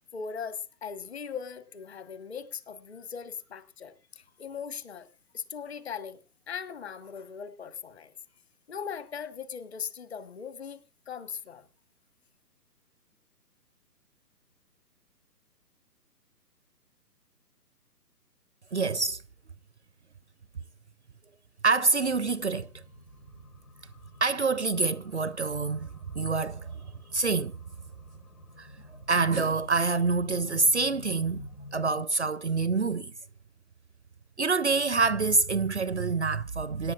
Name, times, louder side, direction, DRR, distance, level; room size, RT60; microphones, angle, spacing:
voice 1, 0.1-5.1 5.3-6.2 6.5-8.1 8.7-11.6, left 6 dB, 40° left, 1.3 m, -39 dB
voice 2, 18.7-19.2 21.6-22.7 24.2-26.8 27.1-27.6 28.6-28.7 29.1-33.1 34.4-36.9, right 4 dB, 45° right, 0.5 m, -26 dB
sound 1, 22.0-32.0, left 2 dB, 75° left, 5.3 m, -51 dB
25.5 x 10.5 x 2.4 m
figure-of-eight pair, 140°, 49 cm